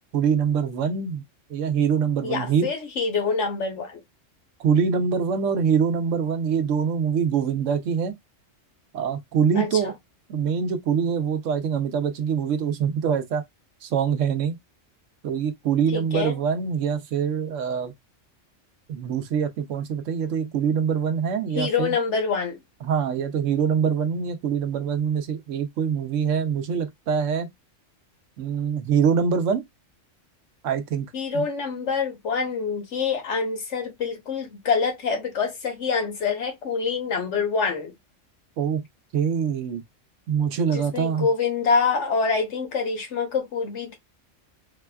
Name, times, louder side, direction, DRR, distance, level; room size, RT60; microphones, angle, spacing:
voice 1, 0.1-1.2 1.5-2.7 4.6-8.2 8.9-9.9 10.3-13.4 13.8-14.6 15.2-17.9 18.9-21.9 22.8-27.5 28.4-29.6 30.6-31.1 31.3-31.5 38.6-38.8 39.1-39.8 40.3-41.3, right 7 dB, 80° right, 1.0 m, -24 dB
voice 2, 2.2-4.0 9.5-9.9 15.9-16.4 21.5-22.6 31.1-37.9 40.7-44.0, left 5 dB, 70° left, 1.3 m, -26 dB
4.1 x 2.3 x 2.2 m
omnidirectional pair, 1.3 m